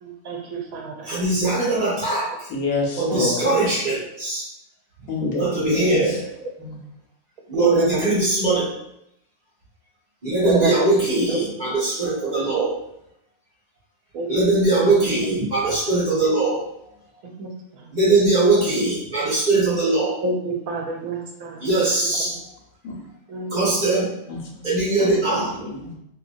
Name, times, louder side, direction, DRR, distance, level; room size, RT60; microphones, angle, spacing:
voice 1, 0.0-1.1 3.1-3.2 7.5-8.0 10.4-10.7 11.3-11.4 14.1-14.3 17.4-17.5 17.8-17.9 20.2-21.8 23.3-23.6, right 2 dB, 80° right, 0 dB, 1.1 m, -26 dB
voice 2, 1.0-2.5 2.9-4.5 5.0-5.1 5.4-6.2 7.5-8.7 10.2-12.7 14.3-16.6 17.9-20.1 21.6-22.3 23.5-24.1 24.6-25.6, right 2 dB, 35° right, -8 dB, 1.2 m, -21 dB
voice 3, 2.5-3.5 5.1-6.0 6.6-6.8 22.8-23.0 24.3-24.6 25.0-25.1 25.6-25.9, left 3 dB, 80° left, 0 dB, 1.1 m, -27 dB
2.9 x 2.7 x 2.5 m, 0.80 s
omnidirectional pair, 1.5 m